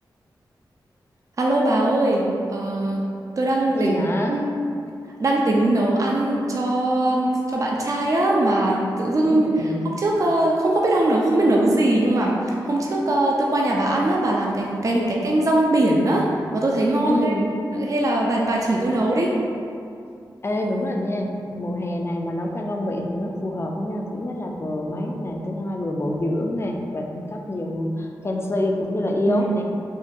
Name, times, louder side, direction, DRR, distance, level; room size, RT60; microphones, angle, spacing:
voice 1, 1.4-3.1 3.4-3.9 4.3-4.5 5.2-16.3 16.5-19.3 29.3-29.4, right 1 dB, 40° right, -2 dB, 0.4 m, -21 dB
voice 2, 3.7-4.4 9.3-9.8 14.9-15.2 17.1-17.5 20.4-29.6, left 1 dB, 30° left, 1 dB, 0.4 m, -26 dB
3.6 x 2.2 x 2.6 m, 2.4 s
cardioid pair, 45°, 8 cm